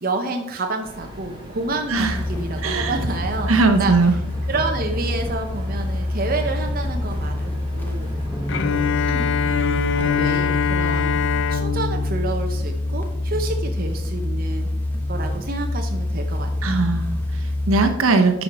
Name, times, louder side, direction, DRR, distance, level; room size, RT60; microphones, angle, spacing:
voice 1, 0.0-3.9 4.5-8.1 9.1-9.6 9.9-11.2 11.5-14.7 15.1-16.8, right 3 dB, 45° right, 3 dB, 0.7 m, -29 dB
sound 1, 0.8-8.6, equal, 20° right, 1.2 m, -40 dB
sound 2, 1.9-17.9, left 1 dB, 10° left, 1.2 m, -26 dB
voice 2, 2.6-3.0 3.5-4.1 16.6-18.4, right 3 dB, 80° right, 6 dB, 1.1 m, -19 dB
Bowed string instrument, 8.5-13.4, left 7 dB, 60° left, 0.5 m, -24 dB
9.9 x 5.6 x 4.2 m, 0.88 s
head